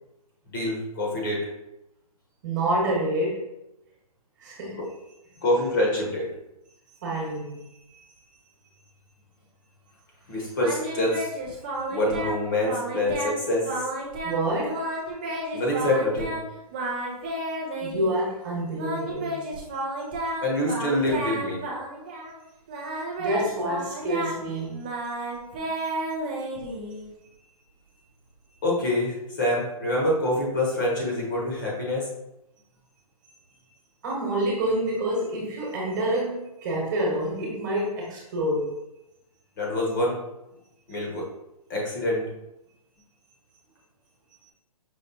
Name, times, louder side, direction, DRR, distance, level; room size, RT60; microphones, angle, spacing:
voice 1, 0.5-1.5 4.8-4.9 5.4-6.3 10.3-11.3 11.9-13.7 15.5-16.3 20.4-21.6 28.6-32.1 39.6-40.2 40.9-41.3 41.7-42.3, left 1 dB, 35° left, -2 dB, 1.1 m, -26 dB
voice 2, 2.4-3.5 4.4-4.8 7.0-7.6 7.9-8.0 14.2-15.0 17.8-19.4 23.2-24.9 34.0-38.8, right 1 dB, 30° right, -3 dB, 1.3 m, -27 dB
Singing, 10.6-12.4 12.6-13.4 13.6-14.4 14.6-16.4 16.7-18.2 18.8-22.4 22.7-27.1, right 1 dB, 15° right, 0.4 m, -32 dB
5.3 x 3.0 x 2.8 m, 0.89 s
hypercardioid pair, 165°, 20 cm